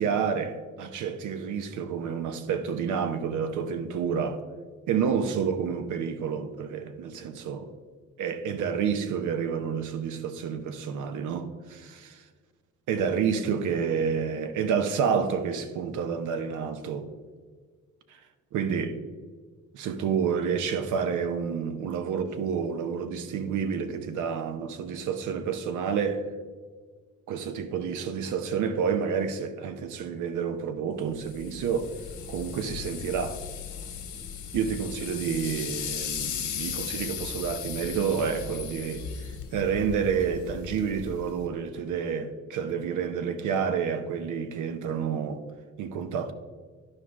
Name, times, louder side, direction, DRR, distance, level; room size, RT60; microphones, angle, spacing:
voice 1, 0.0-4.4 4.9-7.7 8.2-12.2 12.9-17.1 18.1-18.2 18.5-19.0 19.7-26.3 27.3-31.9 32.3-33.4 34.5-45.4 45.8-46.3, right 6 dB, 80° right, 0.8 m, -29 dB
sound 1, 31.2-41.5, left 8 dB, 80° left, 1.5 m, -37 dB
12.0 x 4.8 x 3.6 m
cardioid pair, 90°, 30 cm